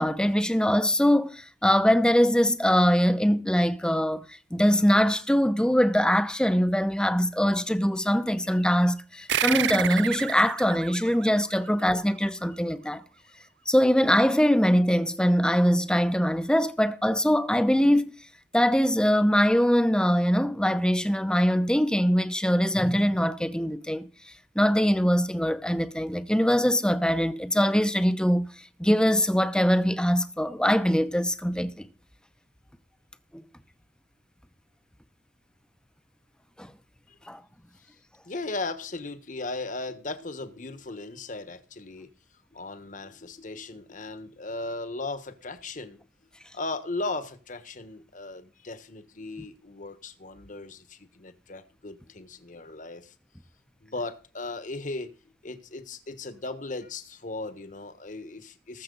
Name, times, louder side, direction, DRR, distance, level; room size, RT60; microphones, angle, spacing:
voice 1, 0.0-13.0 13.7-18.1 18.5-24.1 24.6-28.5 28.8-31.9 33.3-33.4 36.6-36.7 37.3-37.4, equal, 5° left, 0.8 m, -23 dB
sound 1, 9.3-12.3, right 10 dB, 85° right, 0.5 m, -30 dB
voice 2, 38.2-42.1 42.5-46.0 46.5-53.1 53.8-55.1 55.4-58.8, left 2 dB, 45° left, 1.4 m, -37 dB
19.5 x 7.4 x 4.0 m
head